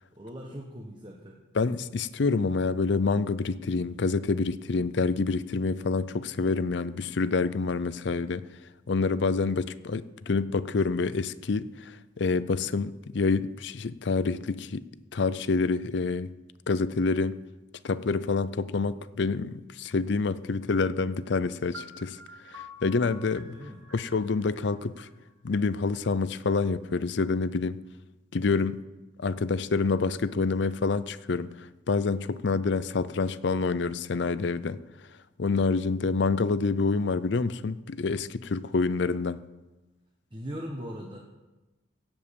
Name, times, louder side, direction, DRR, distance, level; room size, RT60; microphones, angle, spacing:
voice 1, 0.1-1.4 23.5-23.8 40.3-41.2, equal, 25° right, 0 dB, 1.1 m, -39 dB
voice 2, 1.6-8.4 8.9-14.8 15.1-16.3 16.7-17.4 17.8-22.2 22.5-23.5 23.9-25.1 25.4-27.8 28.3-28.8 29.2-31.5 31.9-34.8 35.4-39.4, left 4 dB, 60° left, 16 dB, 0.5 m, -27 dB
sound 1, 21.7-25.6, left 2 dB, 85° right, 1.6 m, -48 dB
16.0 x 5.4 x 8.4 m, 1.1 s
head